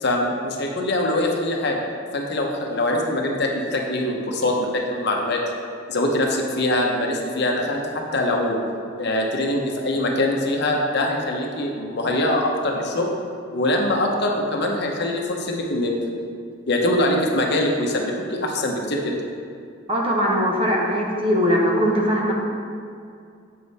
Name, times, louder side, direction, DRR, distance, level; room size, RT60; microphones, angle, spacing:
voice 1, 0.0-1.8 2.1-5.4 5.9-7.8 8.1-8.6 9.0-13.1 13.5-15.9 16.7-19.1, left 1 dB, 55° left, 0 dB, 0.8 m, -23 dB
voice 2, 19.9-22.3, equal, 25° right, -2 dB, 1.0 m, -20 dB
7.5 x 5.3 x 4.1 m, 2.3 s
head